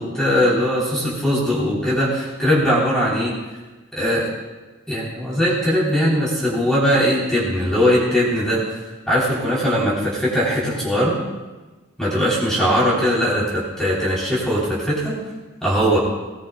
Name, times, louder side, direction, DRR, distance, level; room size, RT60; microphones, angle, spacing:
voice 1, 0.0-3.3 3.9-4.3 4.9-8.6 9.1-11.2 12.0-15.2 15.6-16.0, equal, 5° left, -7 dB, 3.5 m, -20 dB
19.0 x 19.0 x 2.3 m, 1.2 s
head